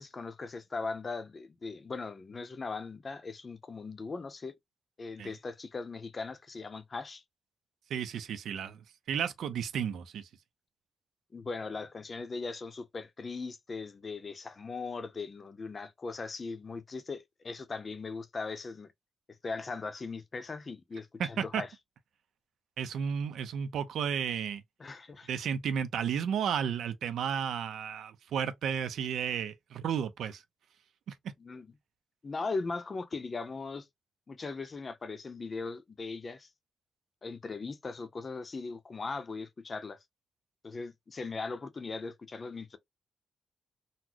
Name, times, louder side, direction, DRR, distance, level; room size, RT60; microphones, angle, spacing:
voice 1, 0.0-4.5 5.0-7.2 11.3-18.9 19.4-21.7 24.8-25.3 31.4-31.7 32.2-33.9 34.3-36.5 37.2-40.0 40.6-42.8, left 4 dB, 30° left, 0.5 m, -39 dB
voice 2, 7.9-10.3 21.2-21.6 22.8-24.6 25.3-30.4 31.1-31.2, right 8 dB, 90° right, 0.5 m, -33 dB
4.0 x 2.1 x 2.8 m
wide cardioid pair, 145°, 0 cm